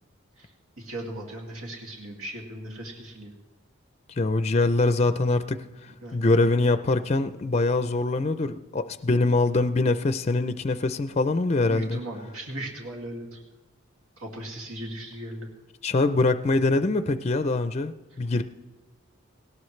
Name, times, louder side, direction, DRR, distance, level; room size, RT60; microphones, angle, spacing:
voice 1, 0.8-3.3 5.0-5.3 6.0-6.2 11.7-13.4 14.2-15.5, right 1 dB, 85° right, -1 dB, 2.3 m, -37 dB
voice 2, 4.1-5.6 6.1-12.0 15.8-18.4, left 2 dB, 30° left, 11 dB, 0.4 m, -23 dB
18.5 x 17.5 x 3.2 m, 1.2 s
head